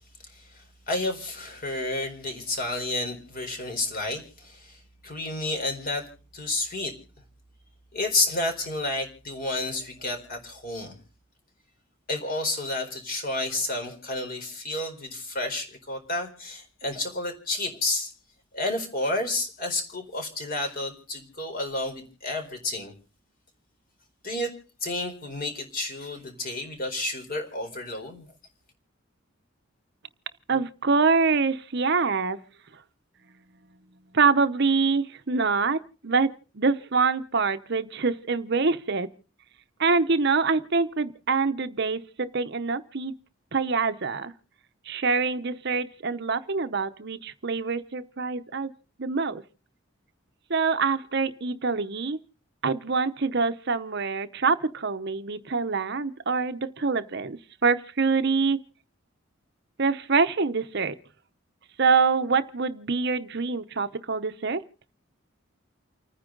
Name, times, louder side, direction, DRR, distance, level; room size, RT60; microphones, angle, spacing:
voice 1, 0.3-6.1 6.3-6.9 7.9-11.0 12.1-18.1 18.5-22.9 24.2-24.5 24.8-28.3, left 2 dB, 45° left, 4.2 m, -31 dB
voice 2, 30.5-32.4 34.1-36.3 36.5-39.1 39.8-43.1 43.5-44.3 44.9-48.7 49.0-49.4 50.5-52.2 52.6-58.6 59.8-60.9 61.8-64.6, right 4 dB, 55° right, 0.9 m, -25 dB
29.5 x 9.9 x 3.9 m
head